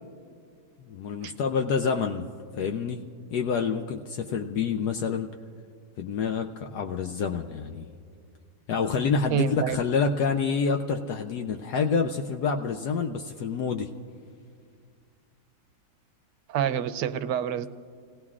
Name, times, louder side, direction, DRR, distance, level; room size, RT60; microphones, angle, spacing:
voice 1, 0.8-2.2 2.6-3.0 3.3-5.3 6.0-7.9 8.7-13.9, left 5 dB, 70° left, 4 dB, 1.2 m, -27 dB
voice 2, 9.3-9.8 16.5-17.7, right 9 dB, 75° right, 11 dB, 1.2 m, -27 dB
29.5 x 18.5 x 2.4 m, 2.1 s
omnidirectional pair, 1.9 m